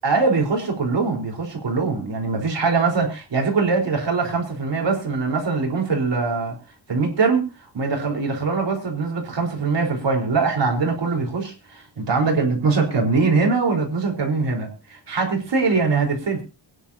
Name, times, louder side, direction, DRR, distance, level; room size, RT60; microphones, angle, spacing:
voice 1, 0.0-6.6 6.9-7.5 7.7-16.4, right 4 dB, 65° right, 2 dB, 4.4 m, -22 dB
22.5 x 10.5 x 2.8 m, 0.29 s
wide cardioid pair, 160°, 45 cm